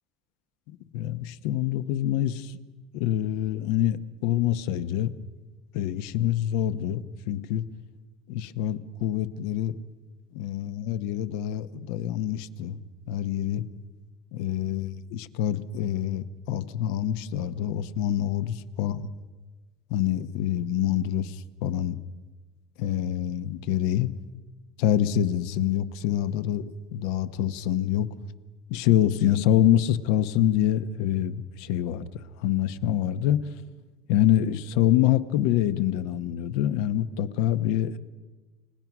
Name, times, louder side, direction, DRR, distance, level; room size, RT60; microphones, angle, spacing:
voice 1, 0.7-2.6 2.9-4.0 4.2-5.1 5.7-7.6 8.3-9.7 10.3-12.8 13.1-13.6 14.3-19.0 19.9-22.0 22.8-24.1 24.8-28.1 28.7-32.1 32.4-33.4 34.1-38.0, left 11 dB, 75° left, 12 dB, 1.0 m, -26 dB
29.5 x 16.5 x 6.1 m, 1.3 s
cardioid pair, 150°, 2 cm